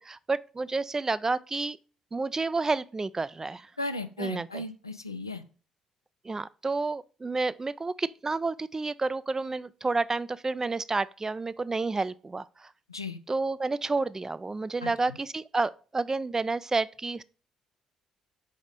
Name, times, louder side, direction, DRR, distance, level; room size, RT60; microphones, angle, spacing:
voice 1, 0.0-1.8 2.1-3.7 4.2-4.6 6.2-12.7 13.3-17.2, right 3 dB, 20° right, 0.3 m, -30 dB
voice 2, 3.8-5.4 12.9-13.2 14.8-15.2, left 2 dB, 90° left, 0.4 m, -36 dB
5.0 x 4.2 x 4.8 m
figure-of-eight pair, 45°, 2 cm